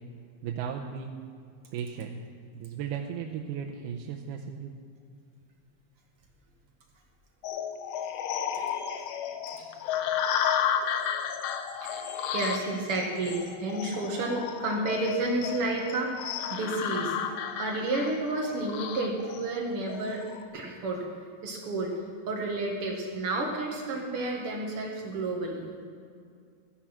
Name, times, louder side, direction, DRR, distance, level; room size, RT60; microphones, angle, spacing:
voice 1, 0.4-1.2 1.7-2.2 2.5-4.7, right 7 dB, 85° right, 0 dB, 2.7 m, -35 dB
sound 1, 7.4-20.4, left 8 dB, 80° left, 2.7 m, -33 dB
voice 2, 8.1-9.0 9.6-9.7 11.8-17.2 17.6-20.2 20.5-21.0 21.4-21.9 22.3-25.7, right 2 dB, 50° right, 0 dB, 1.8 m, -31 dB
15.0 x 10.5 x 6.0 m, 2.3 s
omnidirectional pair, 4.6 m